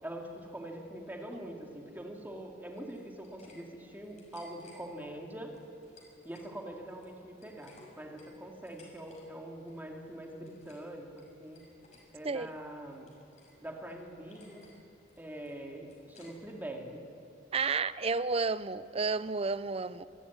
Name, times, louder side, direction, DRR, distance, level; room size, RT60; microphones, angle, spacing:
voice 1, 0.0-5.5 6.2-11.7 12.1-13.1 13.6-14.6 15.2-17.0, right 1 dB, 10° right, 2.5 m, -44 dB
sound 1, 2.8-3.6 3.9-4.8 5.5-6.5 6.9-9.2 9.5-9.8 10.2-10.9 11.2-12.0 12.5-13.6 13.9-14.0 14.3-14.8 15.1-16.6, left 3 dB, 40° left, 6.3 m, -60 dB
voice 2, 17.5-20.0, right 4 dB, 30° right, 0.6 m, -31 dB
25.5 x 14.5 x 9.7 m
head